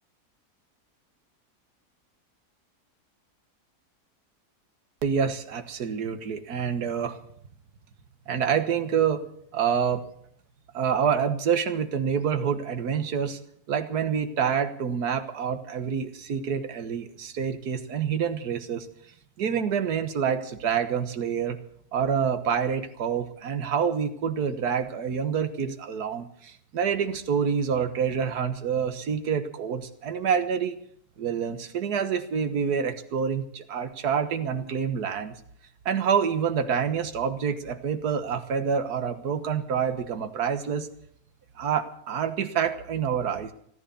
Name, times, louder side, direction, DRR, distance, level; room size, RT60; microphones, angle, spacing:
voice 1, 5.0-7.2 8.3-9.2 9.5-10.0 10.7-13.4 13.7-18.9 19.4-21.6 21.9-30.8 31.2-35.3 35.9-40.9 41.6-43.5, right 7 dB, 70° right, 9 dB, 1.8 m, -27 dB
14.0 x 14.0 x 7.0 m, 0.66 s
omnidirectional pair, 1.7 m